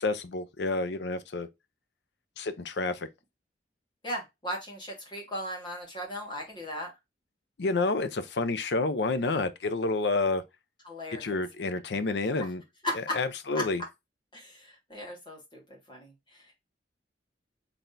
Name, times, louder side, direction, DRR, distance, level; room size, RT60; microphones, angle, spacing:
voice 1, 0.0-1.5 2.4-3.1 7.6-10.4 11.2-12.6 12.9-13.8, left 3 dB, 70° left, 0.6 m, -29 dB
voice 2, 4.0-6.9 10.8-11.4 12.8-13.2 13.5-13.6 14.3-16.6, left 1 dB, 25° left, 1.8 m, -37 dB
4.1 x 3.4 x 2.6 m
head